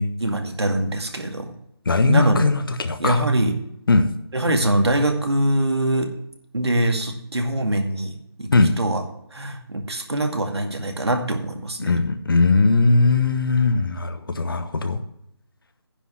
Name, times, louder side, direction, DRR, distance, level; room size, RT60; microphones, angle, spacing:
voice 1, 0.2-1.5 2.0-2.5 3.0-3.5 4.3-6.1 6.5-8.1 8.4-9.0 9.3-11.9, right 1 dB, 75° right, 4 dB, 2.2 m, -23 dB
voice 2, 1.9-3.2 3.9-4.1 8.5-8.7 11.8-15.0, left 3 dB, 55° left, 9 dB, 1.2 m, -19 dB
10.0 x 5.4 x 7.6 m, 0.77 s
figure-of-eight pair, 165°, 14 cm